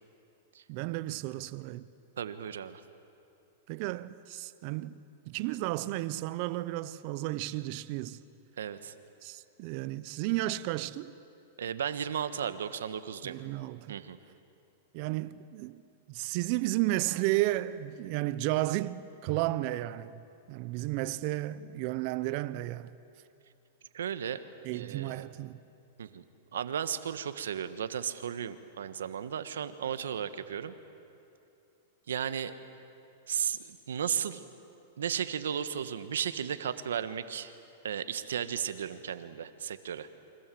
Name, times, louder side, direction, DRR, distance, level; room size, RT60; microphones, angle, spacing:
voice 1, 0.7-1.9 3.7-5.0 5.3-8.2 9.2-11.1 13.2-14.0 14.9-15.8 16.1-20.2 20.5-22.9 24.6-25.6, right 17 dB, 50° right, 0.9 m, -33 dB
voice 2, 2.2-2.8 8.6-8.9 11.6-13.4 13.9-14.2 23.9-24.4 24.7-25.2 26.0-26.2 26.5-30.7 32.1-32.5 33.3-34.4 35.0-37.5 37.8-40.1, right 8 dB, 85° right, 1.5 m, -34 dB
29.0 x 25.0 x 7.8 m
hypercardioid pair, 130°, 0 cm